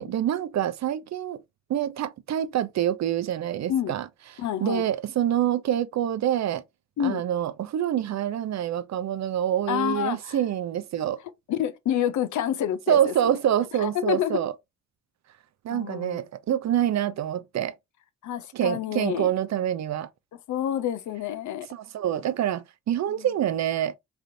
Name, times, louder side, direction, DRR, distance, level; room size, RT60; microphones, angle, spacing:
voice 1, 0.0-1.4 1.7-4.1 4.6-6.6 7.0-11.2 12.9-14.5 15.6-17.7 18.5-20.1 21.7-24.0, right 10 dB, 65° right, 0.4 m, -26 dB
voice 2, 4.4-4.8 7.0-7.2 9.7-10.4 11.5-13.4 13.8-14.4 15.7-16.2 18.2-19.3 20.5-21.7 23.2-23.3, left 10 dB, 90° left, 0.5 m, -28 dB
3.2 x 2.5 x 2.6 m
cardioid pair, 65°, 29 cm